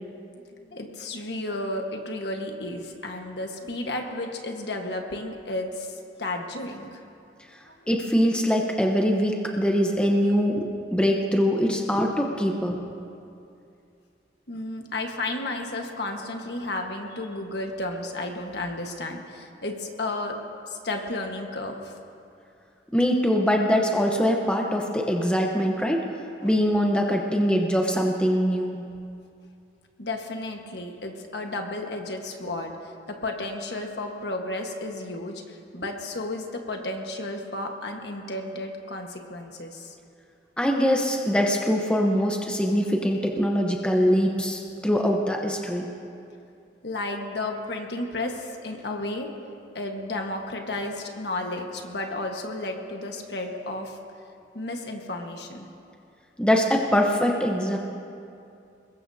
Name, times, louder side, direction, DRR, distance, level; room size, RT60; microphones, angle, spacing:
voice 1, 0.5-7.0 7.6-7.8 14.5-20.4 20.7-22.0 26.4-26.5 30.0-40.0 46.8-49.3 49.7-54.0 54.5-55.7, left 2 dB, 65° left, 2 dB, 1.5 m, -33 dB
voice 2, 7.9-12.8 22.9-26.1 26.4-28.9 40.6-45.9 56.4-57.8, equal, 5° left, 1 dB, 1.0 m, -23 dB
23.0 x 21.0 x 2.8 m, 2.5 s
head